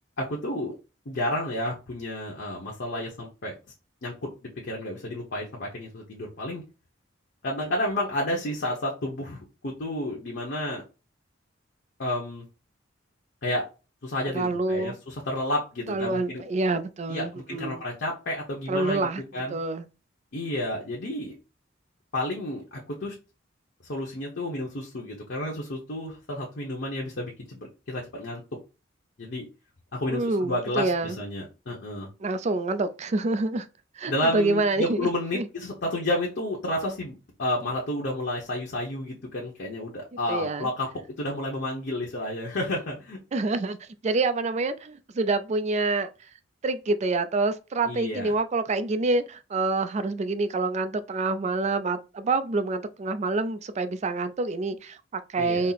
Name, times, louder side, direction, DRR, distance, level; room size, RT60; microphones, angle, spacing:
voice 1, 0.2-0.7 1.1-3.5 4.0-6.6 7.4-10.8 12.0-12.4 13.4-13.6 14.0-16.4 17.1-19.1 19.3-19.5 20.3-21.3 22.1-23.1 23.9-28.4 29.2-29.4 29.9-32.1 34.1-40.9 41.2-43.2 47.8-48.3 55.4-55.7, left 1 dB, 60° left, 0.8 m, -31 dB
voice 2, 14.3-15.0 15.9-17.8 18.7-19.2 19.5-19.9 30.1-31.2 32.2-33.7 34.0-35.1 35.3-35.5 40.3-40.7 43.3-46.1 46.6-55.7, right 3 dB, 35° right, 0.4 m, -27 dB
4.2 x 2.0 x 3.9 m
head